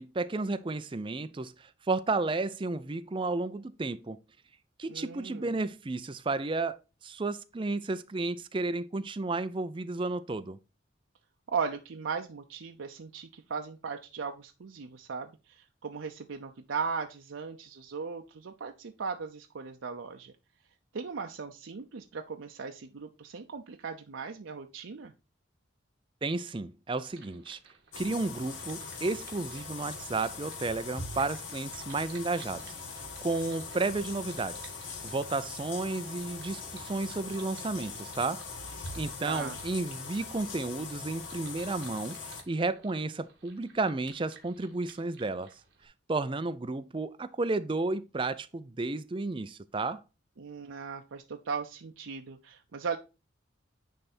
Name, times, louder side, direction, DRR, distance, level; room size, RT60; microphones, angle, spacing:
voice 1, 0.0-4.2 4.8-10.6 26.2-27.6 28.0-32.7 33.2-34.7 35.0-38.4 38.7-42.1 42.5-45.5 46.1-50.0, right 3 dB, 25° right, 0.4 m, -32 dB
voice 2, 4.9-5.5 11.5-20.3 20.9-25.1 39.2-39.6 50.4-53.0, right 5 dB, 75° right, 0.6 m, -37 dB
sound 1, 27.1-45.9, right 6 dB, 55° right, 1.8 m, -57 dB
sound 2, 27.9-42.4, left 4 dB, 70° left, 1.4 m, -41 dB
9.9 x 3.4 x 4.3 m
head